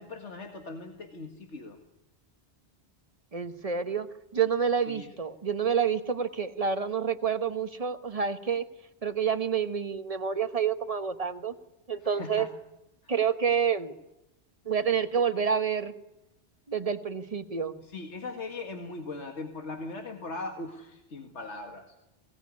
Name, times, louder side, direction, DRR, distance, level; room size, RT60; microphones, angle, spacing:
voice 1, 0.0-1.8 4.9-5.1 12.0-12.5 13.0-13.1 17.8-21.9, left 3 dB, 85° left, 4 dB, 2.1 m, -40 dB
voice 2, 3.3-4.1 4.3-8.6 9.0-11.5 11.9-12.5 13.1-13.9 14.7-15.9 16.7-17.7, right 7 dB, 35° right, 9 dB, 1.3 m, -28 dB
22.0 x 18.5 x 9.6 m, 0.92 s
omnidirectional pair, 1.2 m